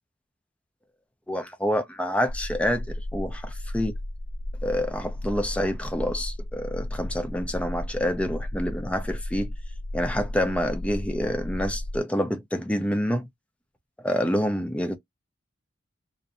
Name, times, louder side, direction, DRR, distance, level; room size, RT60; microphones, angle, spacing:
voice 1, 1.3-3.9 4.6-9.5 9.9-13.3 14.0-15.0, equal, 5° left, 0.4 m, -27 dB
sound 1, 2.3-12.0, left 1 dB, 65° right, 0.6 m, -34 dB
2.6 x 2.0 x 2.5 m
head